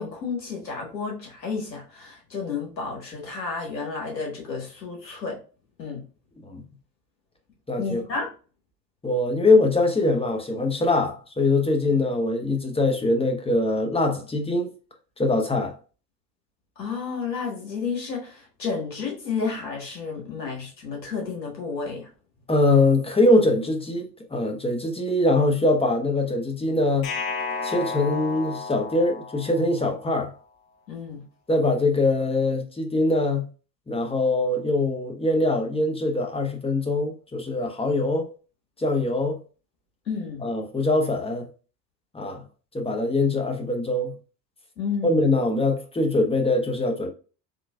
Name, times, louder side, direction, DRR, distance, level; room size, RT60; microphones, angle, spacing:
voice 1, 0.0-5.4 5.8-6.1 7.8-8.3 16.8-22.1 30.9-31.2 40.0-40.4 44.8-45.3, left 5 dB, 90° left, 1.5 m, -31 dB
voice 2, 7.7-8.0 9.0-14.7 15.2-15.7 22.5-27.1 27.6-30.3 31.5-33.5 33.9-38.3 38.8-39.4 40.4-41.5 42.1-42.4 42.7-44.1 45.0-47.1, left 2 dB, 10° left, 1.0 m, -23 dB
sound 1, 27.0-30.1, left 4 dB, 60° left, 0.9 m, -32 dB
3.7 x 3.2 x 2.3 m
figure-of-eight pair, 70°, 49 cm